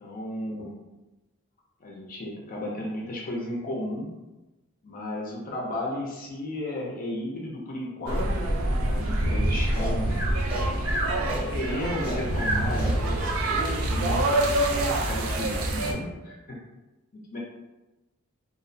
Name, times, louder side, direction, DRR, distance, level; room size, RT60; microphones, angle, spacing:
voice 1, 0.0-0.8 1.8-4.1 4.8-8.4 8.8-10.3 11.5-14.2 14.9-16.6 17.3-17.4, left 1 dB, 40° left, -3 dB, 0.4 m, -34 dB
sound 1, 8.1-15.9, right 1 dB, 75° right, 0.4 m, -26 dB
Breathing, 9.7-13.4, right 1 dB, 10° right, 0.7 m, -32 dB
2.5 x 2.0 x 2.6 m, 1.0 s
head